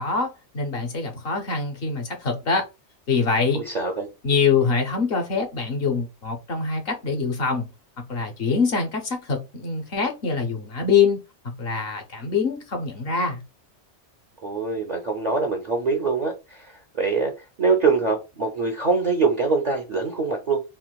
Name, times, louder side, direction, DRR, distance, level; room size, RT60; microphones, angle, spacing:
voice 1, 0.0-2.7 3.1-3.6 4.2-7.7 8.1-11.2 11.6-13.4, left 5 dB, 60° left, 0.8 m, -24 dB
voice 2, 3.5-4.1 14.4-20.6, right 4 dB, 50° right, 0.5 m, -24 dB
3.6 x 2.4 x 2.2 m
omnidirectional pair, 1.2 m